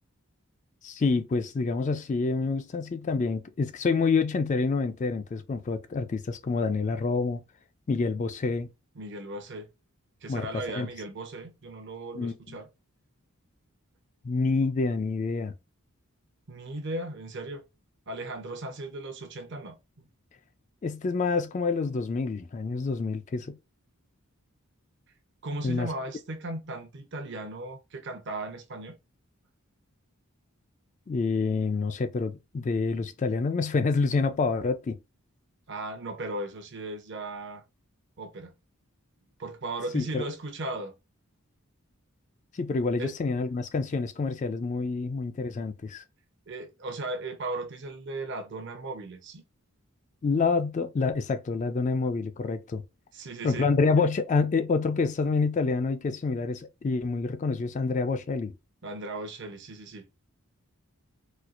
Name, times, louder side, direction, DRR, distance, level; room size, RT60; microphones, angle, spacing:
voice 1, 0.8-7.4 7.9-8.7 10.3-10.4 10.7-10.9 12.1-12.6 14.2-15.5 20.8-23.6 25.6-25.9 31.1-35.0 39.9-40.2 42.5-46.0 50.2-52.8 53.4-58.5, left 4 dB, 35° left, 0.3 m, -27 dB
voice 2, 9.0-9.7 10.2-12.7 16.5-17.6 18.1-19.8 25.4-29.0 35.7-37.6 38.2-38.5 39.4-40.9 43.0-43.1 46.5-49.4 53.1-53.7 58.8-60.1, right 2 dB, 50° right, 0.7 m, -37 dB
4.2 x 2.3 x 2.4 m
head